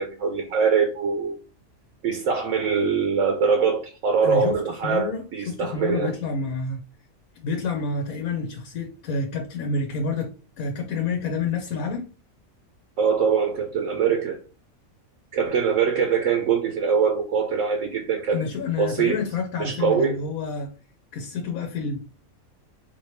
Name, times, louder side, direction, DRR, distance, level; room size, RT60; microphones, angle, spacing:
voice 1, 0.0-1.4 2.0-6.1 13.0-14.4 15.3-18.5 18.8-19.2 19.6-20.2, right 6 dB, 70° right, 1.1 m, -23 dB
voice 2, 4.2-6.8 7.4-12.1 18.3-20.7 21.1-22.0, left 4 dB, 85° left, 1.2 m, -29 dB
4.4 x 3.0 x 3.0 m
omnidirectional pair, 1.5 m